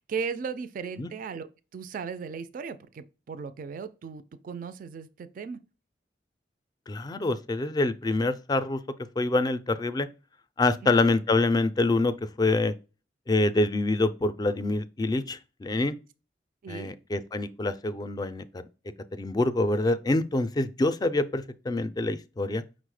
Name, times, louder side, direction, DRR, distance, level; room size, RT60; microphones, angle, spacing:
voice 1, 0.0-5.6 10.8-11.0 16.6-16.9, right 5 dB, 50° right, 0.3 m, -37 dB
voice 2, 6.9-8.8 9.2-10.1 10.6-12.7 13.3-15.9 16.7-18.7 19.1-22.6, left 2 dB, 25° left, 0.4 m, -26 dB
5.4 x 2.1 x 4.7 m
head